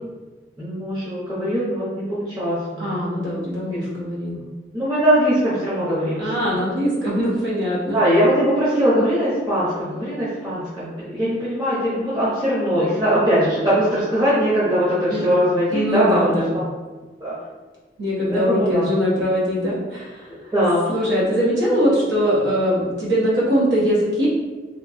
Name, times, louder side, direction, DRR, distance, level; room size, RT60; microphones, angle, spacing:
voice 1, 0.6-2.9 4.7-6.2 7.9-16.3 17.2-17.3 18.3-18.9 20.3-20.8, equal, 25° right, -11 dB, 0.7 m, -21 dB
voice 2, 2.8-4.4 6.2-8.0 15.1-15.2 15.7-16.6 18.0-20.3 20.9-24.3, equal, 85° right, -7 dB, 1.0 m, -21 dB
2.9 x 2.5 x 2.6 m, 1.3 s
head